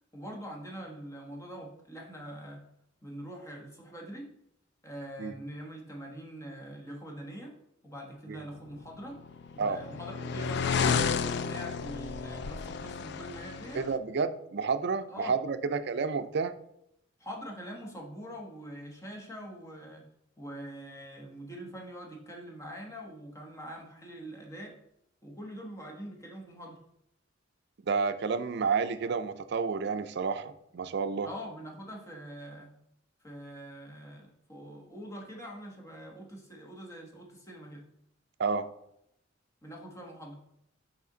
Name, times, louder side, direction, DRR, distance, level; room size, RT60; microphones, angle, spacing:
voice 1, 0.1-2.6 3.0-4.3 4.8-7.5 7.8-9.2 9.5-13.8 15.1-15.4 17.2-20.1 20.4-24.8 25.2-26.8 31.2-32.7 33.2-37.9 39.6-40.4, equal, 15° left, 0 dB, 1.2 m, -44 dB
sound 1, 9.0-14.0, left 6 dB, 60° left, 0.3 m, -32 dB
voice 2, 13.7-16.5 27.9-31.3 38.4-38.7, right 5 dB, 60° right, 11 dB, 0.5 m, -30 dB
5.8 x 5.0 x 3.9 m, 0.77 s
head